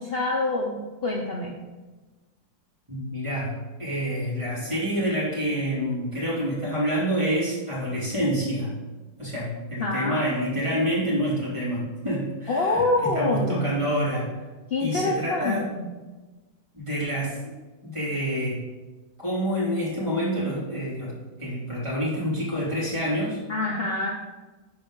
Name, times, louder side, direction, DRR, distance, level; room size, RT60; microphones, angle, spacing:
voice 1, 0.0-1.6 9.8-10.3 12.5-13.7 14.7-15.9 23.5-24.1, left 2 dB, 60° left, -1 dB, 0.6 m, -26 dB
voice 2, 2.9-3.5 3.8-8.7 9.2-12.8 13.1-14.3 14.8-15.7 16.7-17.5 17.8-18.6 19.2-21.1 21.4-23.4, equal, 15° right, -7 dB, 2.8 m, -27 dB
12.0 x 4.4 x 3.7 m, 1.2 s
omnidirectional pair, 2.0 m